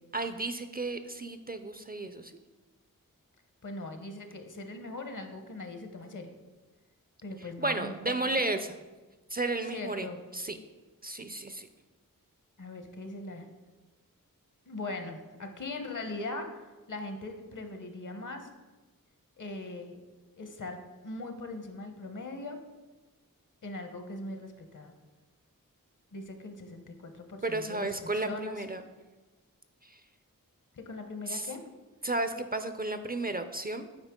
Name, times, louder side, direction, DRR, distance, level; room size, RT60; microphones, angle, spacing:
voice 1, 0.1-2.3 7.6-8.8 9.3-10.1 10.3-10.6 11.0-11.7 27.4-28.8 29.8-30.0 31.3-31.5 32.0-33.9, right 2 dB, 30° right, 9 dB, 0.4 m, -33 dB
voice 2, 3.6-6.3 7.2-8.2 9.7-10.2 12.6-13.5 14.7-16.5 16.9-18.5 19.4-20.0 20.4-20.8 21.0-22.6 23.6-24.9 26.1-28.6 30.7-31.6, left 2 dB, 60° left, 6 dB, 0.9 m, -40 dB
8.9 x 4.6 x 3.6 m, 1.2 s
wide cardioid pair, 75°, 34 cm